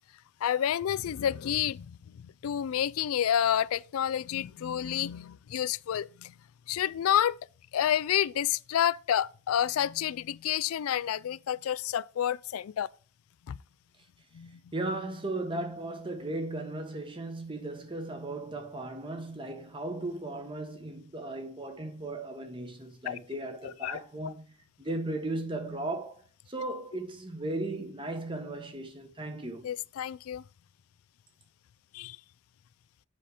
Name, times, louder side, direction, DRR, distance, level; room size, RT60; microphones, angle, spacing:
voice 1, 0.4-6.3 6.7-7.4 7.7-12.9 13.5-13.6 14.3-14.6 23.1-23.2 23.6-24.3 29.6-30.4 31.9-32.2, left 10 dB, 90° left, 0.3 m, -29 dB
voice 2, 14.7-24.4 24.8-29.7, right 2 dB, 25° right, 1.2 m, -36 dB
7.7 x 5.1 x 4.9 m
head